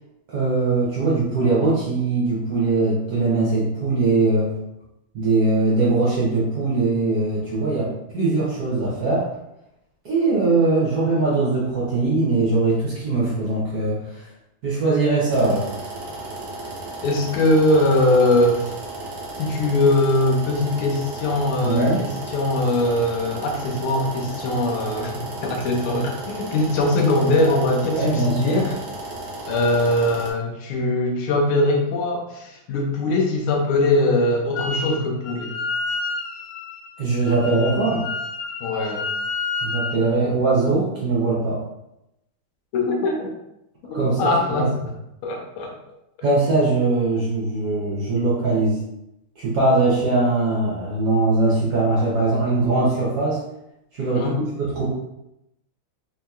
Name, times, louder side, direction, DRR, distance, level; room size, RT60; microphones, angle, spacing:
voice 1, 0.3-4.5 5.1-9.3 10.0-14.3 14.6-15.7 21.6-22.0 27.9-28.7 37.0-38.1 39.6-41.6 43.9-44.6 46.2-48.8 49.4-53.4 53.9-54.3 54.6-54.9, right 3 dB, 60° right, -5 dB, 1.0 m, -21 dB
sound 1, 15.3-30.3, right 2 dB, 85° right, 0.6 m, -34 dB
voice 2, 17.0-18.7 19.4-28.8 29.5-35.6 38.6-39.0 42.7-43.3 43.9-44.7 45.2-45.7 54.1-54.4, left 2 dB, 90° left, 0 dB, 1.5 m, -21 dB
Wind instrument woodwind instrument, 34.5-35.0 35.2-40.0, left 4 dB, 75° left, 1.1 m, -29 dB
3.5 x 2.8 x 2.3 m, 0.86 s
omnidirectional pair, 2.3 m